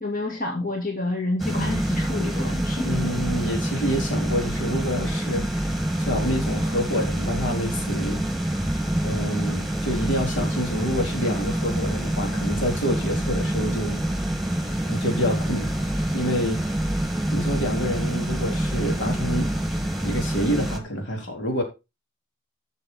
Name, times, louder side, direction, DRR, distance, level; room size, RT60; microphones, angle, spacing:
voice 1, 0.0-2.9, left 2 dB, 45° left, 1 dB, 2.0 m, -28 dB
sound 1, 1.4-20.8, right 1 dB, ahead, 1.6 m, -26 dB
voice 2, 2.8-5.7 6.0-8.3 9.0-14.0 14.6-15.7 16.1-16.6 17.3-19.5 20.0-21.6, equal, 70° left, 2 dB, 4.0 m, -27 dB
12.5 x 6.9 x 4.1 m, 0.27 s
head